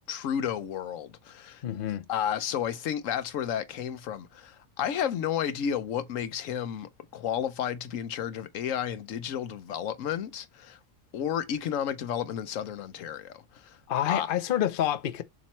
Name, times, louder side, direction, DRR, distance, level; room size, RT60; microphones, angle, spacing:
voice 1, 0.1-1.6 2.1-10.8 11.1-13.8 14.1-14.3, left 9 dB, 85° left, 1.1 m, -32 dB
voice 2, 1.6-2.1 13.9-15.2, left 11 dB, 50° left, 0.8 m, -28 dB
7.3 x 3.1 x 4.3 m
omnidirectional pair, 1.3 m